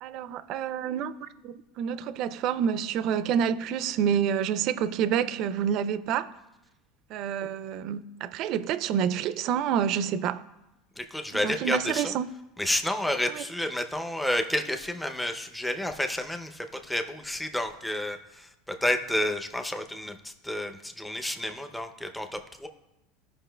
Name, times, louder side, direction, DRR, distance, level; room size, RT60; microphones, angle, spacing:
voice 1, 0.0-6.3 7.1-10.4 11.3-12.3 13.3-13.4, right 8 dB, 50° right, 0.4 m, -28 dB
voice 2, 11.0-12.1 12.6-22.7, left 1 dB, 5° left, 0.6 m, -30 dB
14.5 x 5.4 x 2.2 m
supercardioid pair, 120°, 0 cm